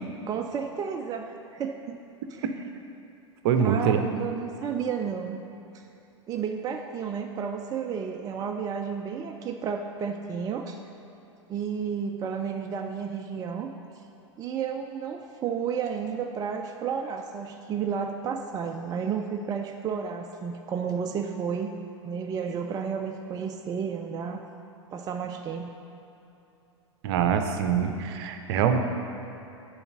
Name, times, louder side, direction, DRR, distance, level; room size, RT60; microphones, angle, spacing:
voice 1, 0.3-2.0 2.3-2.5 3.6-5.4 5.7-5.8 6.3-10.8 11.5-13.7 14.4-21.7 22.0-24.4 24.9-25.7, right 6 dB, 25° right, 4 dB, 0.4 m, -32 dB
voice 2, 3.4-4.0 27.0-28.8, right 7 dB, 55° right, 7 dB, 0.7 m, -24 dB
6.9 x 4.8 x 6.7 m, 2.9 s
hypercardioid pair, 100°, 16 cm